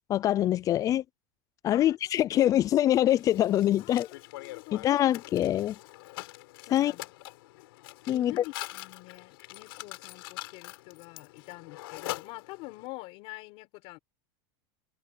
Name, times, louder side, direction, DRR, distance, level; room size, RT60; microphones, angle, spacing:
voice 1, 0.1-1.0 1.6-4.1 4.7-5.8 6.7-6.9 8.1-8.3, left 12 dB, 30° left, 0.5 m, -24 dB
Mechanisms, 3.1-12.9, left 19 dB, 75° left, 6.6 m, -44 dB
voice 2, 3.8-4.8 6.7-7.1 8.1-14.0, left 23 dB, 50° left, 4.6 m, -45 dB
supercardioid pair, 150°, 12 cm